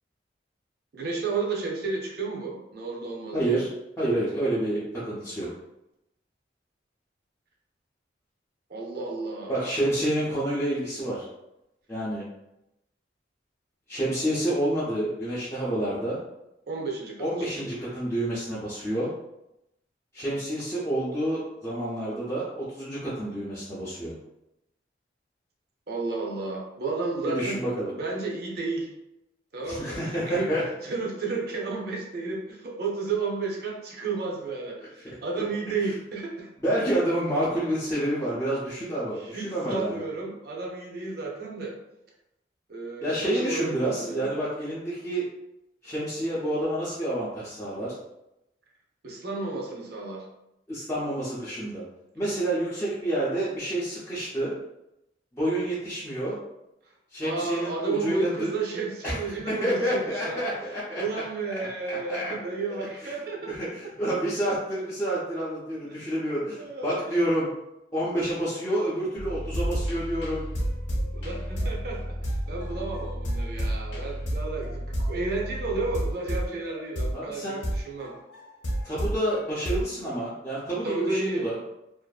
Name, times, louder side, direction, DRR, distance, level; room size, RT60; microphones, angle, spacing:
voice 1, 0.9-3.6 8.7-9.8 16.7-17.3 17.6-17.7 25.9-28.9 29.5-30.5 30.8-36.5 39.2-41.7 42.7-44.4 49.0-50.2 57.2-60.4 60.9-63.5 65.9-66.1 66.5-67.0 71.1-78.1 80.8-81.5, right 3 dB, 55° right, -1 dB, 0.5 m, -32 dB
voice 2, 3.3-3.7 4.0-5.5 9.5-11.3 11.9-12.2 13.9-16.2 17.2-19.1 20.1-24.1 27.3-27.9 29.7-30.6 35.0-35.4 36.6-40.0 43.0-45.3 45.8-47.9 50.7-51.8 52.2-54.5 55.3-56.4 57.1-58.5 59.0-61.2 61.9-62.3 62.7-63.1 63.5-67.5 67.9-70.5 77.1-77.6 78.8-81.5, right 1 dB, 15° left, -10 dB, 0.5 m, -29 dB
sound 1, 69.2-79.2 79.7-80.1, equal, 70° left, 0.7 m, -31 dB
2.6 x 2.4 x 2.3 m, 0.87 s
head